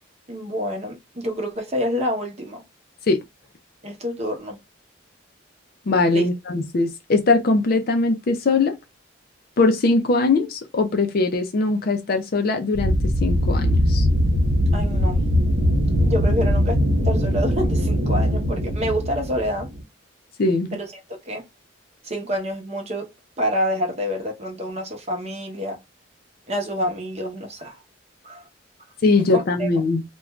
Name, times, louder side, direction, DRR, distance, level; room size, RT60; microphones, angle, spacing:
voice 1, 0.3-2.6 3.8-4.6 6.1-6.3 14.7-15.2 16.0-16.8 17.0-19.7 20.7-20.9 21.2-21.4 22.0-23.1 23.4-25.8 26.5-27.8 28.2-28.4 29.3-29.8, equal, 35° right, 0.8 m, -27 dB
voice 2, 5.9-8.8 9.6-12.9 13.2-14.1 20.4-20.8 29.0-30.0, left 3 dB, 50° left, 0.5 m, -21 dB
sound 1, 12.7-19.8, equal, 75° right, 0.8 m, -21 dB
2.4 x 2.2 x 3.0 m
head